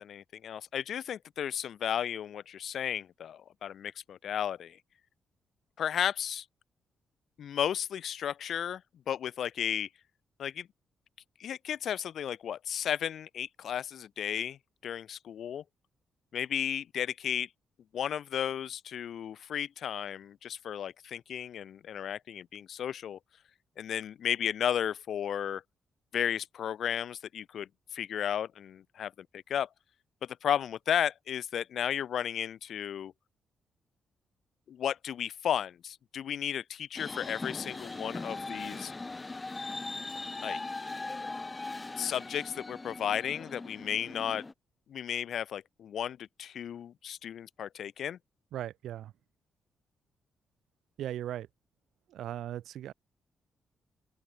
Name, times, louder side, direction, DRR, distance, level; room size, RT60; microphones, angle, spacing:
voice 1, 0.0-4.8 5.8-6.4 7.4-8.8 9.1-9.9 10.4-10.7 11.4-15.6 16.3-17.5 17.9-23.2 23.8-25.6 26.1-29.7 30.2-33.1 34.7-38.9 40.4-40.6 42.0-44.4 44.9-48.2, left 9 dB, 60° left, 0.8 m, -34 dB
sound 1, 37.0-44.5, left 3 dB, 15° left, 1.0 m, -40 dB
voice 2, 48.5-49.1 51.0-51.5 52.1-52.9, right 12 dB, 85° right, 1.1 m, -38 dB
wide cardioid pair, 160°, 0 cm